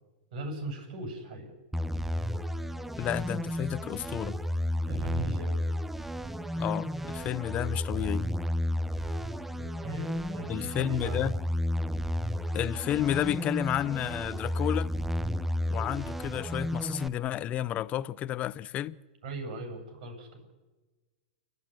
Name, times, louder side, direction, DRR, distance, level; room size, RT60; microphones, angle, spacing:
voice 1, 0.3-1.5 4.9-5.6 9.5-11.2 19.2-20.5, right 2 dB, 60° right, 7.3 m, -39 dB
sound 1, 1.7-17.1, equal, 5° right, 0.7 m, -32 dB
voice 2, 3.0-4.4 6.6-8.3 10.5-11.3 12.5-14.9 15.7-19.0, left 11 dB, 30° left, 0.7 m, -31 dB
29.0 x 12.5 x 9.8 m
hypercardioid pair, 130°, 5 cm